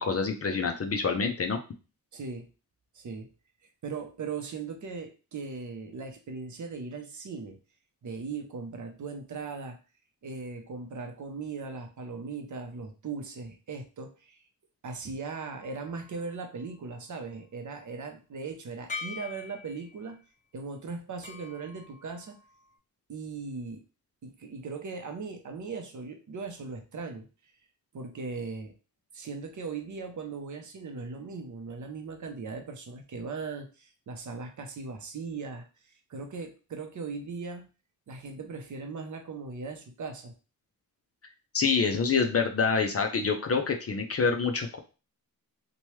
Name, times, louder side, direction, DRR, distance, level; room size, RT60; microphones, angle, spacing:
voice 1, 0.0-1.6 41.5-44.8, left 5 dB, 40° left, 4 dB, 0.4 m, -26 dB
voice 2, 2.1-2.5 2.9-3.3 3.8-7.6 8.0-9.8 10.2-14.4 14.8-20.2 20.5-22.4 23.1-23.8 24.2-27.3 27.9-28.7 29.1-37.7 38.1-40.3, right 4 dB, 50° right, 4 dB, 0.6 m, -38 dB
sound 1, 15.3-16.9 18.9-20.2 21.2-22.8, left 4 dB, 20° left, 1.2 m, -44 dB
2.9 x 2.2 x 3.0 m, 0.33 s
wide cardioid pair, 145°, 37 cm